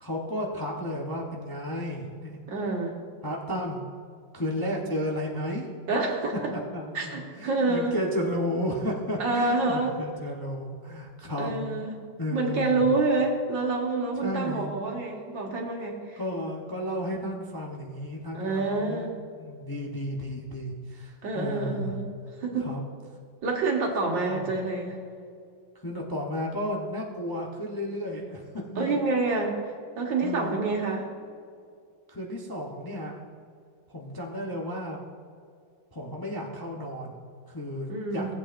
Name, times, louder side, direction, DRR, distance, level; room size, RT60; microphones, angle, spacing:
voice 1, 0.0-2.4 3.2-3.9 4.3-5.7 6.5-11.5 12.2-12.8 14.2-14.7 16.2-19.0 19.4-21.9 22.6-22.8 24.3-24.5 25.8-29.0 30.2-30.6 32.1-33.2 33.9-35.0 35.9-38.4, equal, 20° left, -2 dB, 0.6 m, -33 dB
voice 2, 2.5-3.0 5.9-6.5 6.9-8.0 9.2-10.0 11.4-12.0 12.3-16.2 18.3-19.2 21.2-22.1 22.4-22.8 23.4-25.0 28.8-29.7 30.0-31.1 37.9-38.4, right 3 dB, 80° right, 0 dB, 2.2 m, -27 dB
17.0 x 8.3 x 2.6 m, 2.3 s
omnidirectional pair, 2.0 m